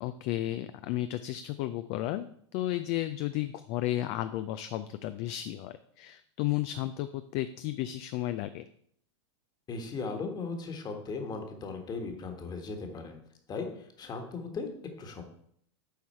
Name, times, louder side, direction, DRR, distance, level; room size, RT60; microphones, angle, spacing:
voice 1, 0.0-8.7, left 14 dB, 45° left, 11 dB, 0.4 m, -33 dB
voice 2, 9.7-13.2 13.5-14.7 15.0-15.2, left 4 dB, 30° left, 5 dB, 1.6 m, -37 dB
8.1 x 4.7 x 4.4 m, 0.67 s
hypercardioid pair, 105°, 15 cm